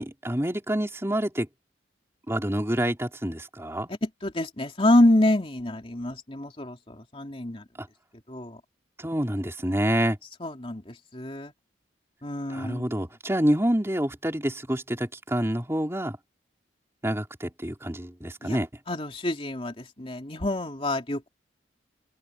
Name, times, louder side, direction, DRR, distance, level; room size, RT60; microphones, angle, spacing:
voice 1, 0.0-1.5 2.3-3.9 7.8-7.9 9.0-10.2 12.5-16.2 17.0-18.7, right 1 dB, 15° right, 3.5 m, -27 dB
voice 2, 4.0-7.6 8.3-8.6 10.4-11.5 12.2-12.8 18.4-18.6 18.9-21.3, left 1 dB, 30° left, 3.1 m, -26 dB
head